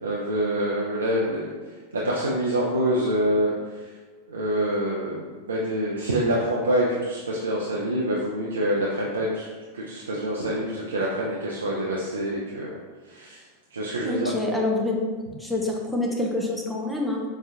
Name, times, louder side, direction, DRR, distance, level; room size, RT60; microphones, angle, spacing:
voice 1, 0.0-1.5 1.9-3.5 4.3-9.5 9.7-12.8 13.1-13.4 13.7-14.3, right 1 dB, 70° right, -4 dB, 0.5 m, -26 dB
voice 2, 14.0-15.0 15.4-17.2, left 2 dB, 5° left, -1 dB, 0.6 m, -26 dB
6.0 x 2.4 x 2.6 m, 1.4 s
figure-of-eight pair, 90°, 0 cm